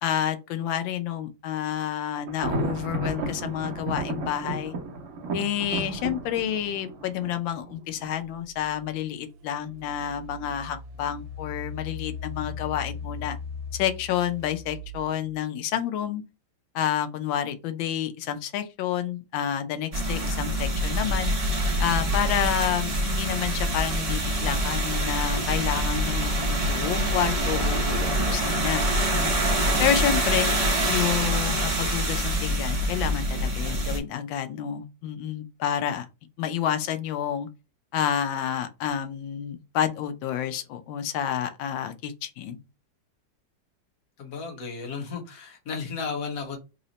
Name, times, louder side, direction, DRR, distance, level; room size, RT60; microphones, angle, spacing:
voice 1, 0.0-4.7 5.3-13.4 13.7-16.2 16.7-21.3 21.8-29.4 29.8-30.5 30.9-36.1 36.4-37.5 37.9-42.6, left 10 dB, 85° left, 1.3 m, -29 dB
Thunder, 2.3-8.1, right 2 dB, 55° right, 0.9 m, -33 dB
Engine, 9.4-15.4, left 4 dB, 90° right, 1.3 m, -38 dB
sound 1, 19.9-34.0, right 1 dB, 35° right, 0.5 m, -25 dB
voice 2, 44.2-46.6, left 5 dB, 55° left, 1.5 m, -34 dB
3.8 x 2.1 x 3.9 m
omnidirectional pair, 2.0 m